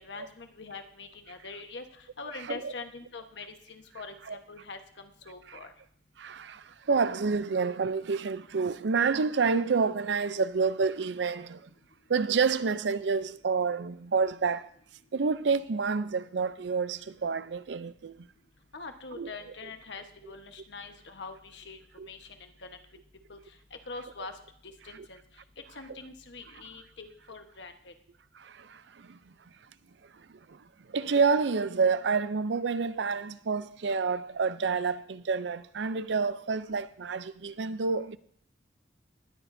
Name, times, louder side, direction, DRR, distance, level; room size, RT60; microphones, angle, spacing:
voice 1, 0.0-5.7 18.7-22.8 23.3-23.4 23.9-24.3 24.6-25.2 25.7-27.9, left 4 dB, 90° left, 1.2 m, -44 dB
voice 2, 6.2-11.7 12.1-14.7 15.1-18.3 19.2-19.3 22.0-22.1 28.3-29.2 30.3-38.2, right 5 dB, 90° right, 0.5 m, -29 dB
19.0 x 13.0 x 2.7 m
head